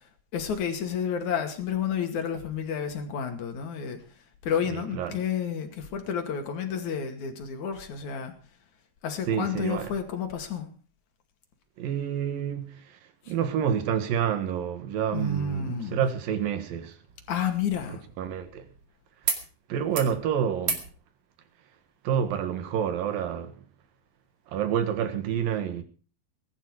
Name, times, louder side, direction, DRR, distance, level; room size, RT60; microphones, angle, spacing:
voice 1, 0.3-4.0 4.4-8.3 9.0-10.7 15.1-16.0 17.3-18.0, left 7 dB, 55° left, 3.4 m, -30 dB
voice 2, 4.6-5.2 9.3-9.9 11.8-13.0 13.3-17.0 17.9-18.7 19.7-20.8 22.0-23.6 24.5-25.8, right 8 dB, 70° right, 3.2 m, -28 dB
sound 1, 17.1-18.8 19.2-19.5 19.8-20.2 20.6-20.9 22.2-22.3, right 5 dB, 45° right, 2.9 m, -34 dB
20.0 x 11.5 x 4.8 m
omnidirectional pair, 4.3 m